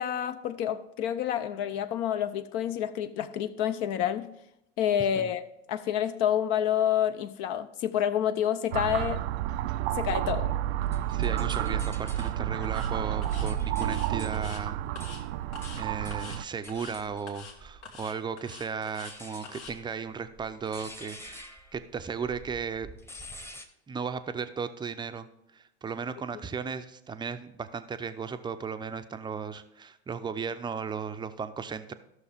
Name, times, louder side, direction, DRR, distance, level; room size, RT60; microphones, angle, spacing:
voice 1, 0.0-4.3 4.8-5.4 5.7-9.2 9.9-10.5, left 10 dB, 50° left, 0.6 m, -28 dB
sound 1, 8.7-16.4, right 11 dB, 65° right, 0.5 m, -30 dB
sound 2, 10.6-12.4 12.9-18.0 18.8-23.7, left 1 dB, 5° left, 0.9 m, -48 dB
voice 2, 11.1-14.8 15.7-21.4 21.7-22.9 23.9-25.3 25.5-31.9, right 6 dB, 15° right, 0.6 m, -35 dB
sound 3, 12.1-12.3 12.6-12.9 13.2-13.5 13.8-14.6 15.0-15.2 15.5-15.8 16.1-16.4 16.7-17.0 17.3-17.6 17.8-19.2 19.4-19.7, left 5 dB, 75° left, 1.8 m, -46 dB
14.0 x 6.3 x 3.5 m
hypercardioid pair, 90°, 34 cm